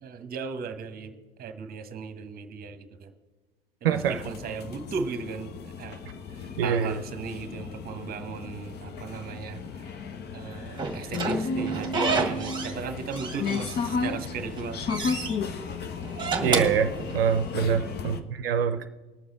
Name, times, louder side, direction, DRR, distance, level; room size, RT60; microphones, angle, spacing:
voice 1, 0.0-3.1 3.8-5.5 5.8-9.9 10.3-14.9 17.7-17.9, right 5 dB, 30° right, 10 dB, 1.2 m, -37 dB
voice 2, 3.8-4.2 6.6-7.0 16.4-18.8, right 7 dB, 75° right, 9 dB, 0.6 m, -25 dB
sound 1, 3.9-18.2, left 4 dB, 35° left, 1.0 m, -34 dB
Slam / Squeak, 10.8-12.8 13.1-14.1 14.5-15.4 16.0-17.6, right 4 dB, 15° right, 1.6 m, -30 dB
20.0 x 6.9 x 3.9 m, 1.2 s
hypercardioid pair, 80°, 29 cm